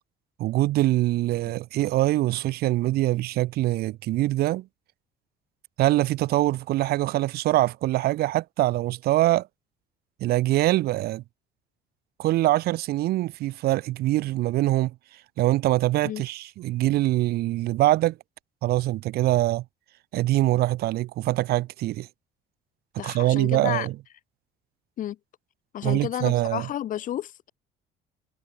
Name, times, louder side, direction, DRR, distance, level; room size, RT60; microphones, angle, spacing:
voice 1, 0.4-4.7 5.8-9.5 10.2-11.2 12.2-14.9 15.4-18.2 18.6-19.6 20.1-22.1 23.0-24.0 25.8-26.7, right 16 dB, 60° right, 0.6 m, -23 dB
voice 2, 23.0-23.9 25.0-25.2 25.7-27.5, left 11 dB, 45° left, 1.2 m, -31 dB
cardioid pair, 155°, 18 cm